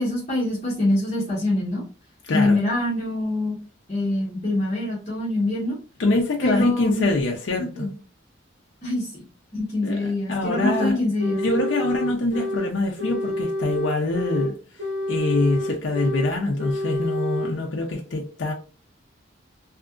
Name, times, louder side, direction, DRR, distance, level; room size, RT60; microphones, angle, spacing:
voice 1, 0.0-1.8 2.3-3.6 3.9-5.7 6.4-7.1 7.7-7.9 8.8-9.2 9.5-11.4, left 2 dB, 35° left, 1.1 m, -24 dB
voice 2, 2.2-2.6 6.0-7.9 9.8-11.0 11.4-14.6 15.1-18.5, left 2 dB, 70° left, 0.5 m, -24 dB
sound 1, 10.5-10.9 11.2-12.7 13.0-14.5 14.8-16.3 16.6-17.5, left 1 dB, 85° right, 0.9 m, -28 dB
2.8 x 2.4 x 2.4 m
head